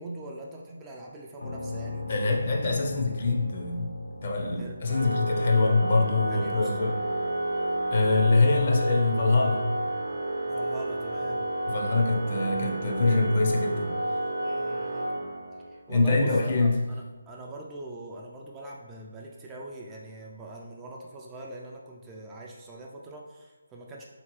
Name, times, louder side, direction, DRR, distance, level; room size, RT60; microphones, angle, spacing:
voice 1, 0.0-2.2 4.6-4.8 6.3-6.8 10.5-11.5 13.0-13.2 14.4-15.2 15.7-24.0, right 1 dB, 15° right, -2 dB, 0.3 m, -42 dB
sound 1, 1.4-15.1, left 2 dB, 80° left, 0.6 m, -45 dB
voice 2, 2.1-3.9 4.2-7.0 7.9-9.7 11.7-13.9 15.9-16.8, left 3 dB, 45° left, 1 dB, 0.6 m, -24 dB
Organ, 4.9-15.8, right 1 dB, 70° right, 0.6 m, -31 dB
3.4 x 2.8 x 3.0 m, 1.2 s
figure-of-eight pair, 155°, 0 cm